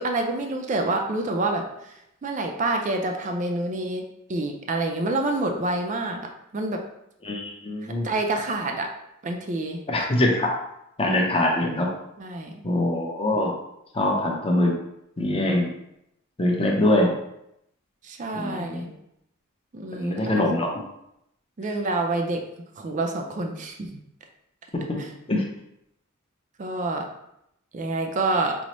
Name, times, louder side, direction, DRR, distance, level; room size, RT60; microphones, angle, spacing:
voice 1, 0.0-1.9 2.2-6.8 7.8-8.9 9.2-9.8 12.2-12.6 18.0-18.9 19.7-20.4 21.6-22.4 22.8-23.9 25.0-25.1 26.6-27.1 27.7-28.6, right 2 dB, 35° right, 3 dB, 0.4 m, -27 dB
voice 2, 7.2-8.1 9.9-10.5 11.0-11.9 12.6-13.5 13.9-14.7 15.2-15.7 16.4-17.1 18.3-18.9 19.9-20.8 24.9-25.0 25.3-25.4, left 1 dB, 25° left, 0 dB, 0.6 m, -23 dB
5.2 x 2.0 x 3.0 m, 0.80 s
head